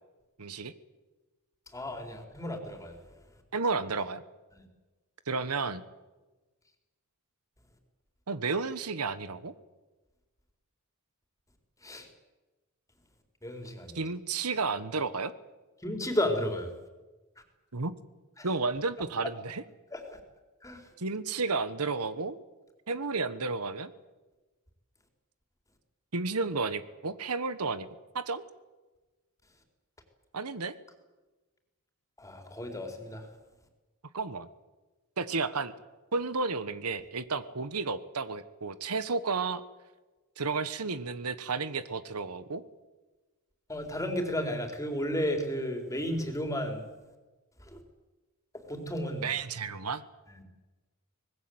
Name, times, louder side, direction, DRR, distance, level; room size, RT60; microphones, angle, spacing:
voice 1, 0.4-0.7 3.5-4.2 5.3-5.8 8.3-9.5 13.9-15.3 17.7-17.9 18.4-19.6 21.0-22.4 22.9-23.9 26.1-27.9 28.1-28.4 30.3-30.7 34.1-34.5 35.2-35.7 36.1-39.6 40.4-42.6 49.2-50.0, right 4 dB, 85° right, 13 dB, 1.3 m, -32 dB
voice 2, 1.7-3.0 4.5-4.6 11.8-12.1 13.4-14.1 15.8-16.7 18.4-18.5 19.9-20.0 20.6-20.8 32.2-33.3 43.7-46.8 47.7-47.8 48.5-49.3 50.3-50.4, left 1 dB, 15° left, 4 dB, 4.0 m, -33 dB
24.5 x 20.5 x 8.0 m, 1.2 s
head